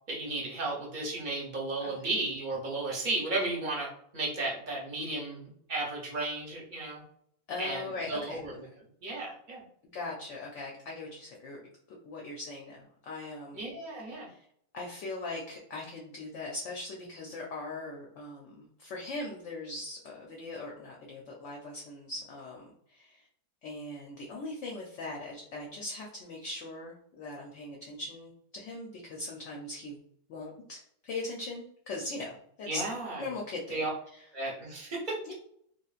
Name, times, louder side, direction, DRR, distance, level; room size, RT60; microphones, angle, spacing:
voice 1, 0.1-7.0 7.6-8.6 9.0-9.6 13.5-14.3 32.7-33.2 33.7-33.9 34.3-35.3, right 2 dB, 40° right, -3 dB, 0.7 m, -34 dB
voice 2, 7.5-8.4 9.9-11.6 11.9-13.6 14.1-14.4 14.7-23.2 23.6-30.0 30.3-32.8 33.2-33.8 34.1-34.2 35.3-35.4, left 2 dB, 65° left, -1 dB, 0.8 m, -40 dB
3.2 x 2.4 x 2.4 m, 0.67 s
omnidirectional pair, 1.6 m